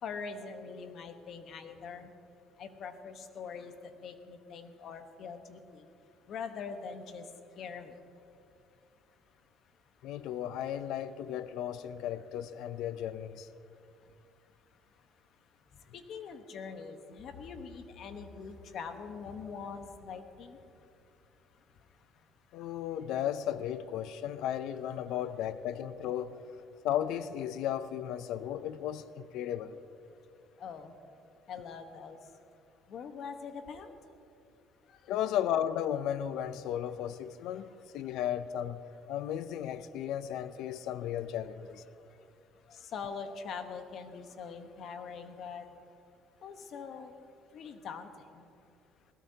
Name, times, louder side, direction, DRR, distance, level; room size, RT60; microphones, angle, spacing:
voice 1, 0.0-2.1 2.6-3.7 4.0-5.8 6.3-7.2 7.6-7.9 15.9-20.6 30.6-30.9 31.5-32.2 32.9-33.9 42.7-45.7 46.4-47.1 47.5-48.1 48.3-48.4, left 5 dB, 55° left, 1.2 m, -43 dB
voice 2, 10.0-13.5 22.5-26.4 26.8-29.8 35.1-37.7 37.9-38.8 39.1-41.8, left 10 dB, 75° left, 0.5 m, -35 dB
21.0 x 17.0 x 2.9 m
cardioid pair, 120°, 0 cm